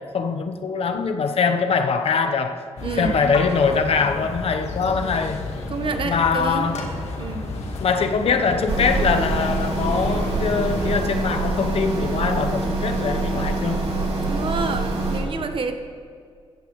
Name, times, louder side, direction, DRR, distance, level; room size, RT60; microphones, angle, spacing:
voice 1, 0.0-2.6 3.0-5.4 6.0-6.8 7.8-13.8, left 5 dB, 65° left, 1.0 m, -23 dB
sound 1, 2.8-11.0, left 3 dB, 85° left, 1.7 m, -32 dB
voice 2, 2.8-3.1 5.7-6.7 7.2-7.5 14.3-15.7, right 4 dB, 55° right, 1.2 m, -28 dB
sound 2, 8.7-15.2, right 2 dB, 75° right, 3.1 m, -25 dB
16.5 x 13.5 x 3.2 m
cardioid pair, 80°, 11 cm